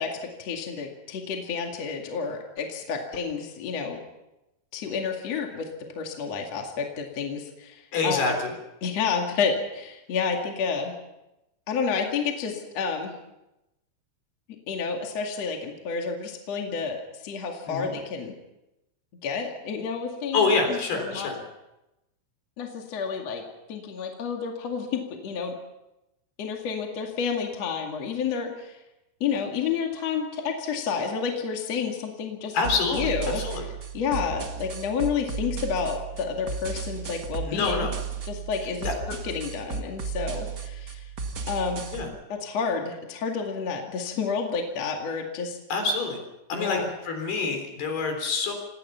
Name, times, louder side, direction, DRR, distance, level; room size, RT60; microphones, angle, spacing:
voice 1, 0.0-4.0 4.7-5.7 6.0-8.2 8.8-10.9 11.7-13.1 14.7-18.3 19.2-21.3 22.6-23.4 23.7-25.5 26.4-28.8 29.2-37.9 38.2-41.1 41.4-41.9 42.3-45.6 46.5-46.9, left 6 dB, 45° left, 2 dB, 2.8 m, -30 dB
voice 2, 7.9-8.5 17.7-17.9 20.3-21.4 32.5-33.6 37.4-38.0 38.8-38.9 41.9-42.1 45.7-46.2 46.5-48.5, left 4 dB, 65° left, 4 dB, 5.7 m, -26 dB
sound 1, 32.6-42.0, right 6 dB, 45° right, 1.3 m, -34 dB
27.0 x 19.0 x 5.8 m, 0.95 s
omnidirectional pair, 5.0 m